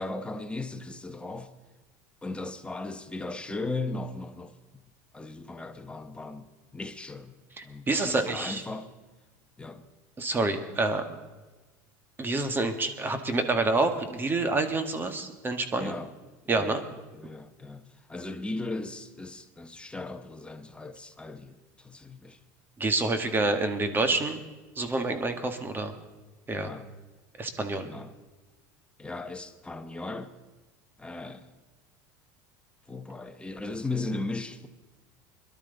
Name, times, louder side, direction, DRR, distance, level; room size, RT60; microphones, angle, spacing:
voice 1, 0.0-1.5 2.2-4.5 5.1-7.3 7.6-8.9 9.6-9.8 15.8-16.1 16.4-16.8 17.2-22.4 26.5-26.9 27.8-28.1 29.0-30.4 31.0-31.5 32.9-34.7, left 2 dB, 10° left, 1.1 m, -37 dB
voice 2, 7.6-8.6 10.2-11.1 12.2-15.9 16.5-16.8 22.8-24.4 24.7-25.9 26.5-26.7 27.4-27.9, right 2 dB, 20° right, 1.8 m, -28 dB
22.0 x 12.0 x 4.1 m
supercardioid pair, 105°, 9 cm